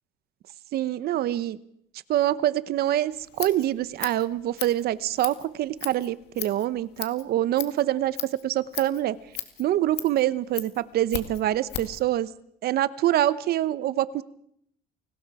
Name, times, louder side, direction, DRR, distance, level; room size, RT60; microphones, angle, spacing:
voice 1, 0.7-1.6 2.1-9.2 9.6-12.3 12.6-14.2, right 13 dB, 65° right, 16 dB, 0.9 m, -25 dB
Scissors, 3.1-12.0, left 12 dB, 80° left, 2.1 m, -38 dB
29.0 x 19.5 x 4.9 m, 0.71 s
cardioid pair, 110°, 17 cm